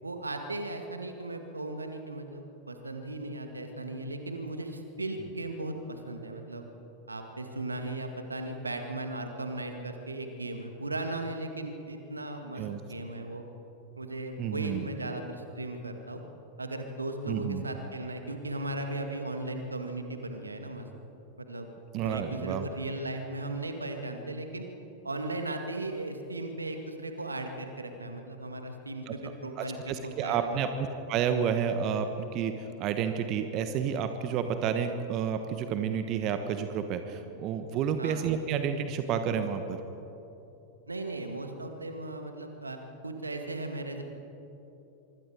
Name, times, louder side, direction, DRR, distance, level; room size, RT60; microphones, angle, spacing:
voice 1, 0.0-6.7 7.1-13.4 14.0-16.2 16.6-20.9 21.4-21.7 22.0-24.7 25.0-29.8 30.0-30.6 38.0-38.2 40.9-44.0, right 2 dB, 80° right, 5 dB, 2.1 m, -37 dB
voice 2, 14.4-14.9 17.3-17.6 21.9-22.7 29.1-29.2 29.6-39.8, right 7 dB, 40° right, 8 dB, 1.2 m, -30 dB
25.0 x 24.0 x 5.0 m, 3.0 s
figure-of-eight pair, 90°, 0 cm